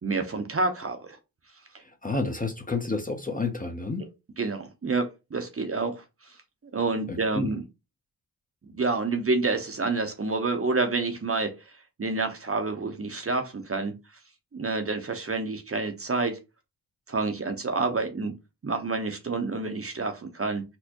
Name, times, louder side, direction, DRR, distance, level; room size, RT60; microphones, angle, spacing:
voice 1, 0.0-1.2 4.4-6.0 6.7-7.6 8.7-11.5 12.0-13.9 14.5-16.4 17.1-18.3 18.6-20.6, right 3 dB, 30° right, 0.8 m, -28 dB
voice 2, 2.0-4.1 7.1-7.5, left 3 dB, 20° left, 0.7 m, -30 dB
4.3 x 2.1 x 2.9 m
cardioid pair, 55°, 45 cm